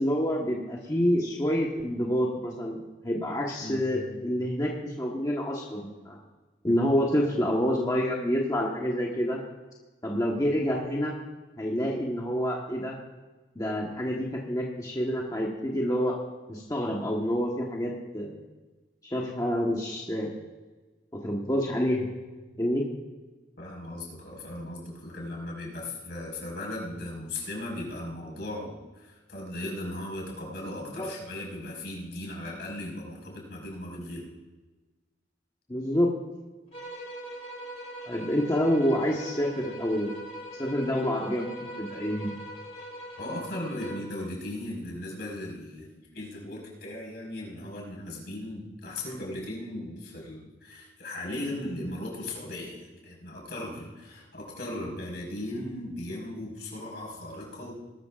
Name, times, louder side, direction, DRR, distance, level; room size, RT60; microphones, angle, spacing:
voice 1, 0.0-6.2 6.6-9.4 10.0-11.1 11.6-12.9 13.5-16.2 16.5-18.3 19.1-20.3 21.1-22.1 22.5-22.8 30.9-31.1 35.7-36.1 38.1-40.1 40.6-42.3, equal, 20° left, -2 dB, 1.3 m, -28 dB
voice 2, 23.6-34.3 43.1-57.7, left 1 dB, 65° left, -2 dB, 5.0 m, -37 dB
sound 1, 36.7-44.2, right 1 dB, 35° left, 2.5 m, -42 dB
20.0 x 13.0 x 2.5 m, 1.2 s
head